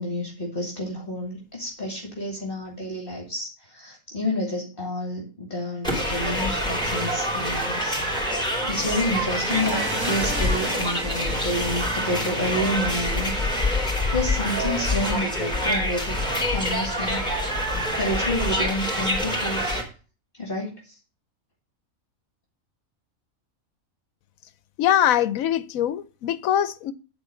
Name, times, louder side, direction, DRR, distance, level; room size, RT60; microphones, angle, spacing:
voice 1, 0.0-8.0 8.6-13.8 14.1-16.2 16.5-17.3 18.0-19.8 20.4-20.9, left 1 dB, 40° left, 2.5 m, -29 dB
sound 1, 5.8-19.8, left 1 dB, 5° left, 4.5 m, -26 dB
sound 2, 9.5-13.0, right 1 dB, 15° right, 1.2 m, -34 dB
voice 2, 24.8-26.9, left 10 dB, 75° left, 1.1 m, -22 dB
12.0 x 4.4 x 6.8 m
omnidirectional pair, 1.5 m